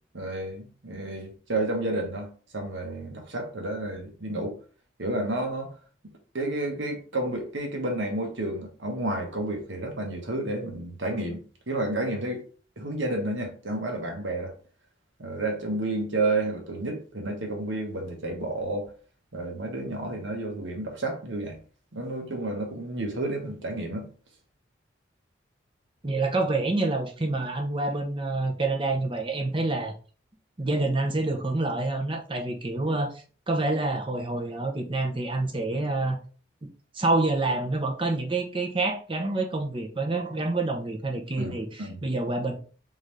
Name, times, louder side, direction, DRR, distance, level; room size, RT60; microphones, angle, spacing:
voice 1, 0.1-4.6 5.0-5.8 6.0-12.4 12.8-14.5 15.2-18.9 19.3-21.6 21.9-24.1 41.4-42.0, right 2 dB, 75° right, 1.3 m, -31 dB
voice 2, 26.0-29.9 30.6-33.1 33.5-36.2 36.9-42.5, right 2 dB, 25° right, 0.7 m, -27 dB
4.0 x 3.8 x 3.2 m
head